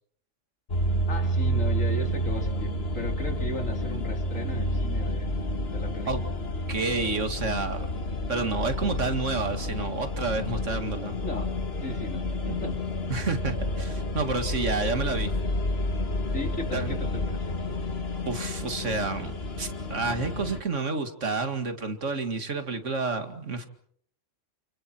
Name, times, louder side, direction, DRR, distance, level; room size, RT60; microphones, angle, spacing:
sound 1, 0.7-20.6, left 1 dB, 50° left, 2.0 m, -30 dB
voice 1, 1.1-5.3 5.7-6.1 11.2-11.5 11.8-12.8 16.3-17.5, left 1 dB, 85° left, 3 dB, 4.2 m, -36 dB
voice 2, 6.7-8.0 8.3-11.2 13.1-15.3 16.7-16.9 18.3-23.7, right 3 dB, 70° right, 7 dB, 2.4 m, -30 dB
29.5 x 29.0 x 4.5 m, 0.64 s
omnidirectional pair, 1.3 m